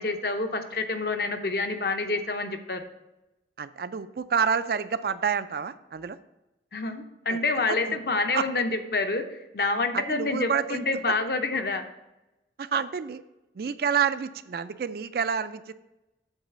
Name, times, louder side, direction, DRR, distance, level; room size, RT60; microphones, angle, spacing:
voice 1, 0.0-2.8 6.7-11.8, left 3 dB, 60° left, 7 dB, 0.7 m, -28 dB
voice 2, 3.6-6.2 7.3-7.4 7.7-8.0 8.3-8.5 9.9-10.8 12.6-13.2 13.6-15.7, right 6 dB, 55° right, 13 dB, 0.4 m, -28 dB
8.1 x 4.0 x 6.8 m, 0.94 s
head